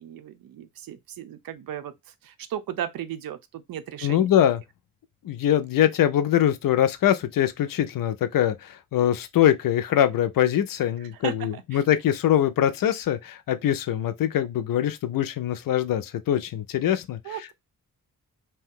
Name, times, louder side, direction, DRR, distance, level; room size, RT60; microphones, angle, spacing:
voice 1, 0.0-1.9 2.2-4.3 11.2-11.8 17.2-17.5, right 10 dB, 85° right, 0.6 m, -35 dB
voice 2, 4.0-4.6 5.2-17.2, left 11 dB, 75° left, 0.5 m, -23 dB
2.7 x 2.2 x 3.5 m
cardioid pair, 95°, 34 cm